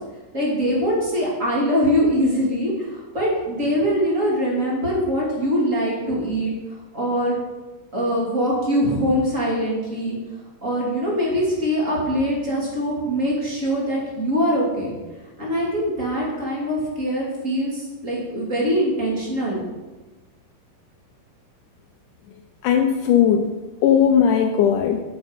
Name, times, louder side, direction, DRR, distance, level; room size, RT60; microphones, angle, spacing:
voice 1, 0.3-6.5 6.9-7.4 7.9-10.2 10.6-14.9 15.4-19.6, equal, 25° right, -5 dB, 2.9 m, -23 dB
voice 2, 22.6-23.5 23.8-25.0, left 8 dB, 80° left, 4 dB, 2.1 m, -17 dB
9.2 x 8.3 x 5.3 m, 1.2 s
omnidirectional pair, 3.8 m